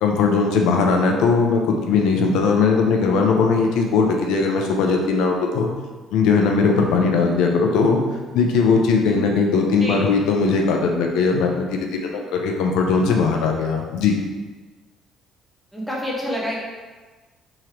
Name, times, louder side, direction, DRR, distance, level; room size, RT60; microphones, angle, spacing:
voice 1, 0.0-5.7 6.1-8.0 8.3-14.2, left 4 dB, 85° left, 2 dB, 0.6 m, -19 dB
voice 2, 15.7-16.6, equal, ahead, -5 dB, 0.8 m, -27 dB
3.6 x 3.0 x 3.2 m, 1.3 s
cardioid pair, 160°, 0 cm